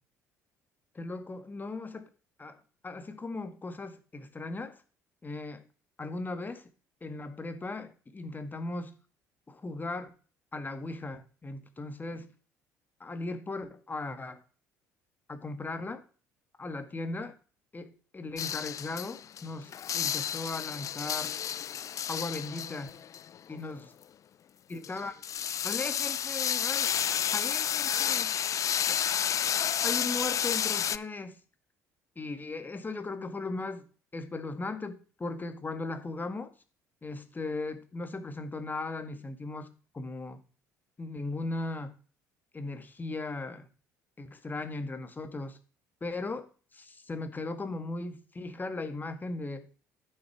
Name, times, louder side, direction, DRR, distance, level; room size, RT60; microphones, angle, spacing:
voice 1, 0.9-2.1 2.4-2.6 2.8-4.8 5.2-5.6 6.0-6.7 7.0-9.0 9.5-10.1 10.5-12.3 13.0-14.4 15.3-16.0 16.6-17.3 17.7-21.3 22.1-23.0 23.5-23.9 24.7-25.1 25.6-26.9 27.3-28.3 28.9-29.2 29.8-31.4 32.1-33.8 34.1-36.5 37.0-40.4 41.0-42.0 42.5-43.7 44.2-45.6 46.0-46.5 46.7-49.7, left 3 dB, 20° left, 1.8 m, -37 dB
sound 1, 18.4-19.5 19.7-23.7 24.8-31.0, left 9 dB, 40° left, 0.5 m, -31 dB
11.0 x 6.5 x 4.9 m
figure-of-eight pair, 55°, 8 cm